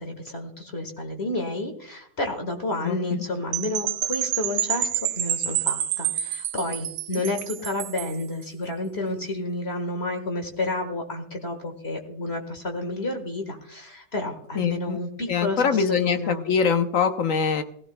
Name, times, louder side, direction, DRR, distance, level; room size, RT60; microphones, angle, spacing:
voice 1, 0.0-4.9 5.1-16.4, left 2 dB, 35° left, 4 dB, 1.7 m, -30 dB
voice 2, 2.8-3.2 14.6-15.0 15.3-17.6, left 6 dB, 55° left, 7 dB, 1.0 m, -23 dB
Percussion / Wind chime, 3.5-8.2, right 11 dB, 85° right, 1.3 m, -28 dB
18.5 x 15.0 x 2.2 m, 0.71 s
omnidirectional pair, 1.9 m